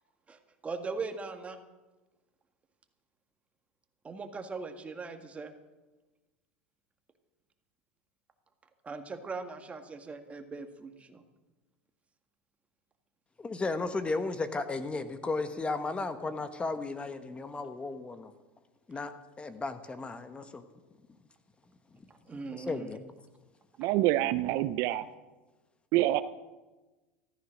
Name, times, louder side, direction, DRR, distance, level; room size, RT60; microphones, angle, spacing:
voice 1, 0.3-1.6 4.0-5.5 8.8-11.2 22.3-22.9, right 4 dB, 20° right, 7 dB, 1.8 m, -40 dB
voice 2, 13.4-18.3 18.9-19.1 19.4-20.6 22.5-23.0, left 3 dB, 20° left, 10 dB, 1.3 m, -34 dB
voice 3, 23.8-25.0 25.9-26.2, right 15 dB, 60° right, 14 dB, 0.6 m, -26 dB
14.0 x 13.5 x 6.4 m, 1.2 s
hypercardioid pair, 95°, 6 cm